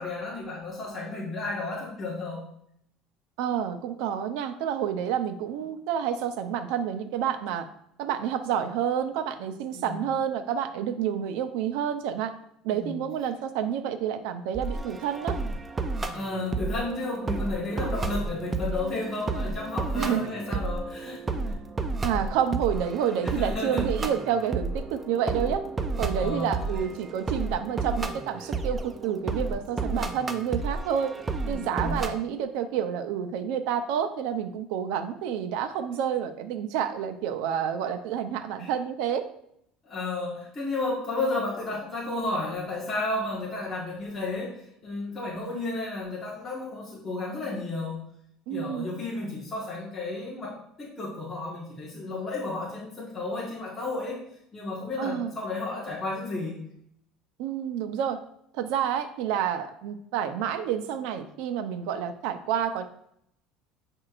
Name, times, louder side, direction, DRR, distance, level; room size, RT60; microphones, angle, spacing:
voice 1, 0.0-2.4 9.7-10.0 12.7-13.0 16.1-21.5 23.2-23.9 26.1-26.6 31.5-32.0 38.6-38.7 39.8-48.0 48.5-54.2 54.5-56.6, left 2 dB, 15° left, -7 dB, 1.5 m, -32 dB
voice 2, 3.4-7.7 8.0-12.3 12.6-15.4 20.0-20.6 22.0-25.6 26.0-31.2 31.5-39.3 48.5-48.9 55.0-55.3 57.4-58.2 58.5-62.8, right 8 dB, 75° right, 8 dB, 0.6 m, -29 dB
sound 1, 14.5-32.1, right 3 dB, 15° right, 0.5 m, -32 dB
8.5 x 4.6 x 2.5 m, 0.73 s
cardioid pair, 150°, 0 cm